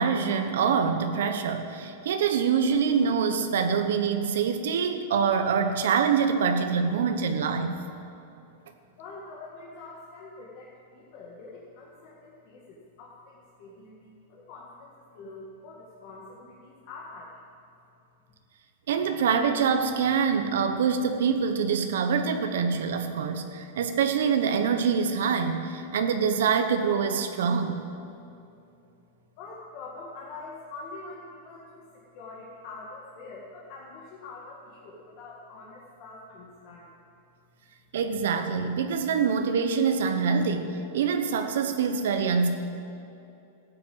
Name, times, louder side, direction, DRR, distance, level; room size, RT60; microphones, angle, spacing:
voice 1, 0.0-7.8 18.9-27.8 37.9-42.5, right 6 dB, 75° right, 7 dB, 1.0 m, -25 dB
voice 2, 9.0-17.4 29.4-37.0, left 3 dB, 35° left, -5 dB, 1.8 m, -45 dB
13.5 x 9.2 x 7.7 m, 2.8 s
supercardioid pair, 170°, 0 cm